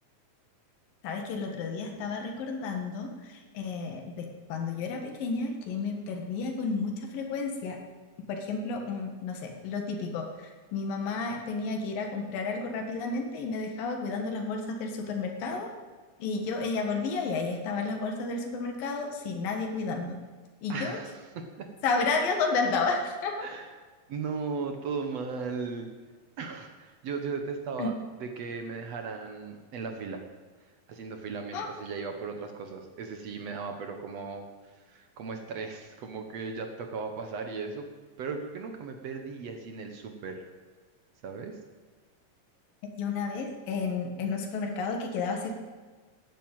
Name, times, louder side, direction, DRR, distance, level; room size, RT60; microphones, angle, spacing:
voice 1, 1.0-7.8 8.3-15.7 16.2-20.2 20.6-21.0 21.8-23.5 27.8-27.9 31.5-31.7 43.0-45.5, left 4 dB, 80° left, 3 dB, 3.5 m, -31 dB
voice 2, 20.7-21.7 23.4-23.7 24.1-25.9 26.4-28.0 28.2-30.2 30.9-37.9 38.2-40.4 41.2-41.6, right 5 dB, 60° right, 5 dB, 2.0 m, -37 dB
14.0 x 9.5 x 9.0 m, 1.4 s
omnidirectional pair, 4.0 m